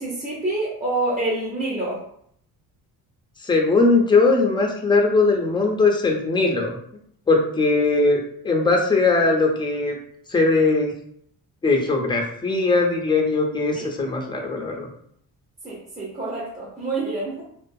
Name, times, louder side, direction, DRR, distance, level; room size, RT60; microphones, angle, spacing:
voice 1, 0.0-2.0 13.7-13.8 15.6-17.4, right 2 dB, 20° right, -6 dB, 0.8 m, -27 dB
voice 2, 3.4-6.8 7.3-8.2 8.4-10.0 10.3-10.9 11.6-14.9, left 3 dB, 10° left, 1 dB, 0.6 m, -20 dB
2.4 x 2.3 x 2.6 m, 0.67 s
cardioid pair, 85°, 38 cm